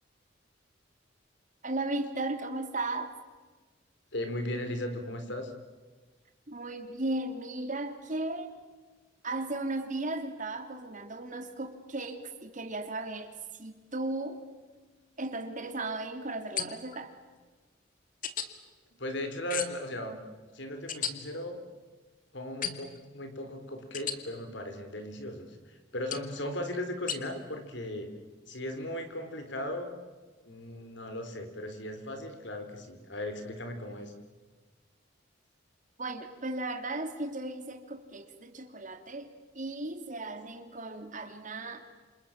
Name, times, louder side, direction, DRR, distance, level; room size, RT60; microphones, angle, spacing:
voice 1, 1.6-3.1 6.5-8.6 9.2-14.4 15.2-17.1 36.0-39.3 39.5-41.8, right 2 dB, 40° right, 6 dB, 2.8 m, -36 dB
voice 2, 4.1-5.5 19.0-20.2 20.5-21.6 22.3-28.1 28.5-29.9 30.4-34.1, left 1 dB, 65° left, 7 dB, 4.1 m, -37 dB
sound 1, 16.6-17.0 18.2-18.5 19.5-19.9 20.9-21.1 22.6-23.0 23.9-24.2 26.1-26.3 27.1-27.2, left 8 dB, 45° left, 2.0 m, -34 dB
28.0 x 28.0 x 7.4 m, 1.3 s
head